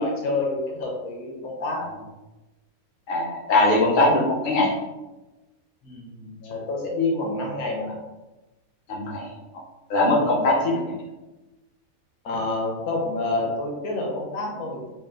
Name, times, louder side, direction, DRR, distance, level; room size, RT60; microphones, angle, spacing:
voice 1, 0.0-2.0 5.8-7.9 10.2-10.4 10.6-10.7 12.2-14.8, left 2 dB, 90° left, -1 dB, 1.4 m, -28 dB
voice 2, 3.1-4.7 8.9-9.3 9.9-10.6, left 2 dB, 40° left, -3 dB, 0.9 m, -21 dB
3.5 x 2.7 x 3.6 m, 1.1 s
omnidirectional pair, 1.5 m